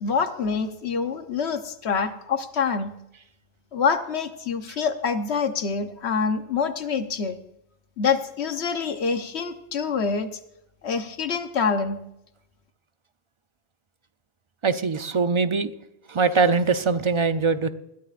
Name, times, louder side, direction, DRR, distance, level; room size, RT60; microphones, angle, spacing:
voice 1, 0.0-2.9 3.7-7.4 8.0-10.3 10.8-12.0, left 5 dB, 80° left, 8 dB, 1.2 m, -26 dB
voice 2, 14.6-15.7 16.1-17.7, right 4 dB, 35° right, 10 dB, 0.6 m, -22 dB
21.0 x 13.5 x 2.5 m, 0.84 s
omnidirectional pair, 1.1 m